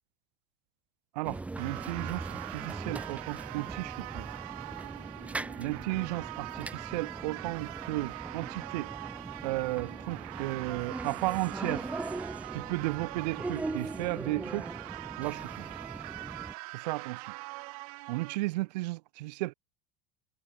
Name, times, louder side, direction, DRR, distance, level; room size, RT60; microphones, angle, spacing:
sound 1, 1.2-16.5, right 3 dB, 5° right, 1.6 m, -40 dB
voice 1, 1.2-4.3 5.6-8.9 9.4-11.9 12.5-14.7 15.2-15.7 16.7-17.3 18.1-19.5, right 21 dB, 75° right, 0.7 m, -34 dB
sound 2, 1.6-18.4, right 27 dB, 60° right, 1.1 m, -43 dB
supercardioid pair, 165°, 21 cm